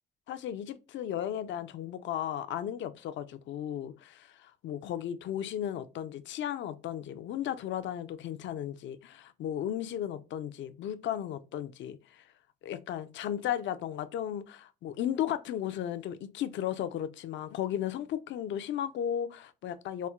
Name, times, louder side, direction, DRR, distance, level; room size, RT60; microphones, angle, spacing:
voice 1, 0.3-12.2 12.6-20.1, left 10 dB, 70° left, 0.4 m, -35 dB
4.2 x 2.1 x 2.3 m
cardioid pair, 90°, 20 cm